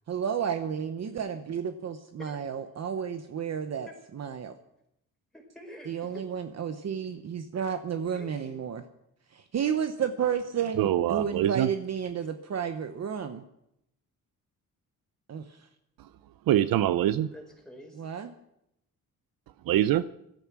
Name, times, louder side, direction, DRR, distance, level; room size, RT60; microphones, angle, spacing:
voice 1, 0.1-3.9 4.1-4.5 5.9-8.8 9.3-13.4 15.3-15.6 18.0-18.3, right 7 dB, 50° right, 8 dB, 0.9 m, -32 dB
voice 2, 5.3-6.2 8.1-8.5 10.6-10.7 17.3-18.0, equal, ahead, 0 dB, 5.1 m, -47 dB
voice 3, 10.8-11.7 16.5-17.3 19.7-20.1, right 12 dB, 80° right, 15 dB, 0.6 m, -24 dB
17.0 x 13.0 x 6.1 m, 0.81 s
cardioid pair, 120°, 34 cm